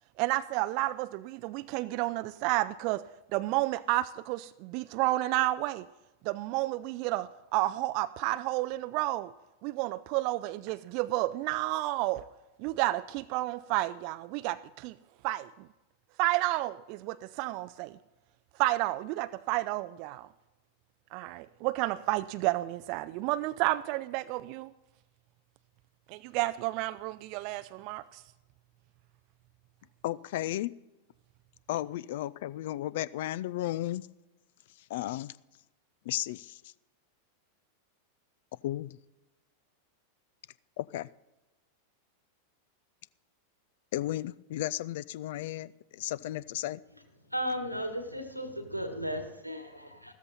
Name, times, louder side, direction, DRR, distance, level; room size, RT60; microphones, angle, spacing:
voice 1, 0.2-5.9 6.2-9.3 9.6-12.3 12.6-15.0 15.2-15.7 16.2-18.0 18.6-20.3 21.1-24.7 26.1-28.2, right 18 dB, 45° right, 0.3 m, -31 dB
voice 2, 30.0-30.7 31.7-34.1 34.8-35.4 36.0-36.7 38.6-39.0 40.8-41.1 43.9-46.8, left 14 dB, 55° left, 0.4 m, -34 dB
voice 3, 47.3-50.1, equal, 90° right, 1.5 m, -35 dB
14.0 x 13.0 x 4.1 m
figure-of-eight pair, 90°, 0 cm